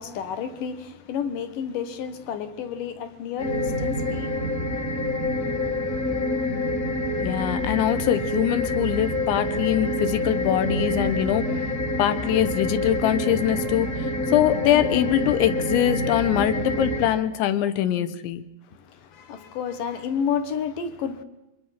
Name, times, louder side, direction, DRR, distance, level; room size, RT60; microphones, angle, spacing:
voice 1, 0.0-4.7 18.9-21.2, left 7 dB, 65° left, 2.4 m, -31 dB
sound 1, 3.4-17.1, left 1 dB, 25° left, 1.8 m, -27 dB
voice 2, 7.2-11.5 12.0-18.4, left 11 dB, 90° left, 3.5 m, -23 dB
25.0 x 21.5 x 5.8 m
omnidirectional pair, 5.1 m